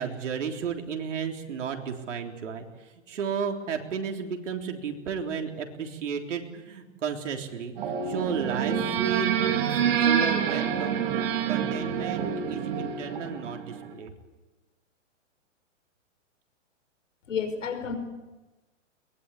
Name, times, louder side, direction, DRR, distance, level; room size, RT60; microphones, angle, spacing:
voice 1, 0.0-11.1 11.5-14.1, right 7 dB, 75° right, 3 dB, 3.6 m, -33 dB
sound 1, 7.8-13.9, right 8 dB, 50° right, 3.9 m, -27 dB
voice 2, 17.3-18.0, left 6 dB, 80° left, 8 dB, 5.2 m, -30 dB
22.5 x 20.5 x 8.5 m, 1.1 s
hypercardioid pair, 150°, 37 cm